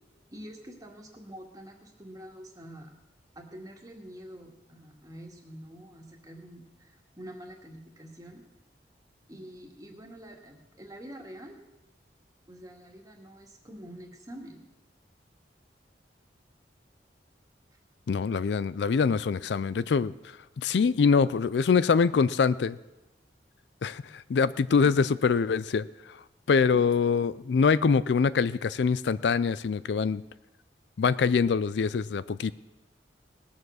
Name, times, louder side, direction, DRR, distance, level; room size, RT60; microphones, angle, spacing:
voice 1, 0.3-2.9 3.4-8.4 9.3-11.6 12.5-14.6 24.8-24.9 26.7-26.9, equal, 20° right, 1 dB, 1.9 m, -46 dB
voice 2, 18.1-22.8 23.8-26.2 26.5-30.2 31.0-32.5, left 5 dB, 75° left, 17 dB, 0.4 m, -24 dB
19.0 x 7.3 x 6.3 m, 1.0 s
head